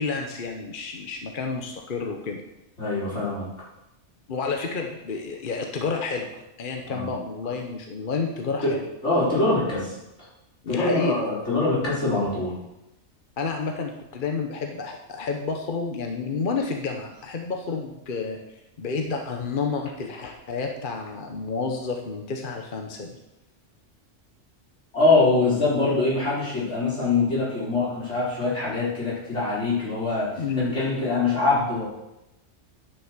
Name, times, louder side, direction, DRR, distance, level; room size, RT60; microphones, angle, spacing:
voice 1, 0.0-2.4 4.3-8.8 10.6-11.2 13.4-18.4 18.8-23.2 30.4-30.8, left 4 dB, 50° left, 3 dB, 1.0 m, -30 dB
voice 2, 2.8-3.4 6.9-7.1 8.6-8.7 9.0-10.0 10.7-12.6 24.9-30.3 30.6-31.9, left 3 dB, 80° left, -9 dB, 4.9 m, -23 dB
9.7 x 5.9 x 6.6 m, 0.90 s
omnidirectional pair, 1.2 m